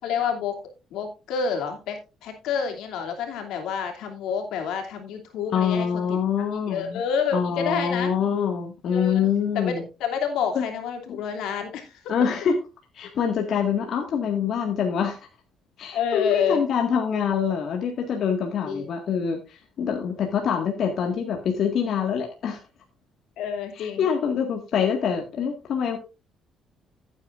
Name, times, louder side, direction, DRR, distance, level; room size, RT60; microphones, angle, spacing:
voice 1, 0.0-0.6 0.9-6.2 6.7-8.1 8.9-9.3 9.5-12.0 15.9-16.7 18.7-18.9 23.4-24.1, left 7 dB, 85° left, 3 dB, 2.9 m, -28 dB
voice 2, 5.5-7.0 7.3-9.8 10.6-10.7 11.1-11.2 12.1-12.6 12.9-15.2 15.8-22.6 23.7-26.0, left 7 dB, 65° left, 2 dB, 1.9 m, -25 dB
14.5 x 9.0 x 2.6 m, 0.29 s
cardioid pair, 100°, 0 cm